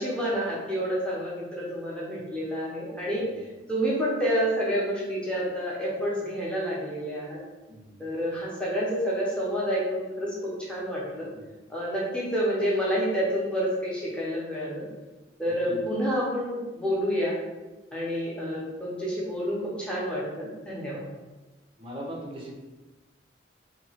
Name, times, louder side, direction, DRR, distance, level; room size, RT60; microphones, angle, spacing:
voice 1, 0.0-3.2 3.7-7.4 8.0-11.3 11.7-14.8 15.4-17.4 17.9-21.1, equal, 5° left, -6 dB, 0.7 m, -29 dB
voice 2, 15.5-15.9 21.8-22.5, equal, 30° right, -2 dB, 0.6 m, -39 dB
2.9 x 2.2 x 2.8 m, 1.1 s
head